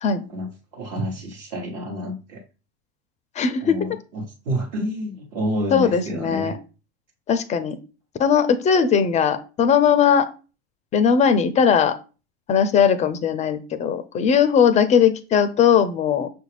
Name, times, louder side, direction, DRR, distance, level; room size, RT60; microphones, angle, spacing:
voice 1, 0.3-2.4 3.6-6.6, equal, 60° right, -2 dB, 1.0 m, -29 dB
voice 2, 3.4-4.0 5.7-6.6 7.3-7.8 8.2-10.3 10.9-11.9 12.5-16.3, left 7 dB, 20° left, 12 dB, 0.4 m, -19 dB
5.9 x 2.4 x 3.2 m, 0.34 s
hypercardioid pair, 100°, 33 cm